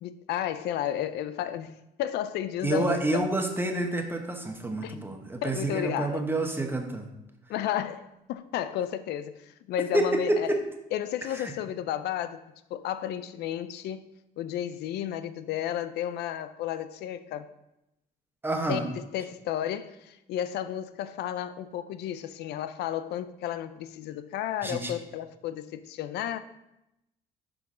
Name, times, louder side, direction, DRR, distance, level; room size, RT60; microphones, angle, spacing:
voice 1, 0.0-3.2 4.8-5.0 5.4-6.3 7.5-10.5 10.9-12.4 12.7-14.1 14.4-17.5 18.7-26.4, left 11 dB, 75° left, 0.4 m, -32 dB
voice 2, 2.6-7.1 9.9-10.6 11.3-11.5 18.4-18.8 24.6-24.9, right 2 dB, 10° right, 1.1 m, -28 dB
11.5 x 3.9 x 3.8 m
cardioid pair, 105°, 17 cm